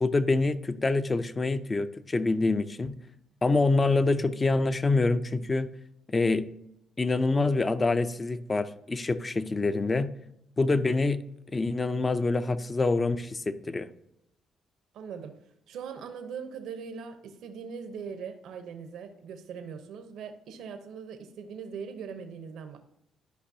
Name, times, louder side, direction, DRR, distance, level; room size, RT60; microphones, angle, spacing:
voice 1, 0.0-2.9 3.4-5.7 6.1-6.4 7.0-10.1 10.6-11.2 11.5-13.9, left 3 dB, 25° left, 13 dB, 0.5 m, -26 dB
voice 2, 14.9-22.8, right 6 dB, 80° right, 7 dB, 0.8 m, -41 dB
11.5 x 5.2 x 2.7 m, 0.80 s
cardioid pair, 90°, 0 cm